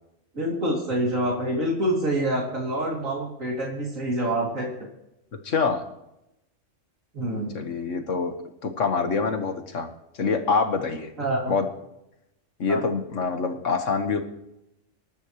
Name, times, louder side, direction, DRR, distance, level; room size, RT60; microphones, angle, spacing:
voice 1, 0.3-4.7 7.1-7.6 11.2-11.5 12.7-12.8, right 1 dB, 90° right, -3 dB, 3.4 m, -26 dB
voice 2, 5.4-5.8 7.5-8.3 8.6-9.9 10.2-11.1 11.5-11.7 12.6-14.2, left 4 dB, 70° left, 6 dB, 1.8 m, -25 dB
25.5 x 12.5 x 3.2 m, 0.85 s
omnidirectional pair, 1.3 m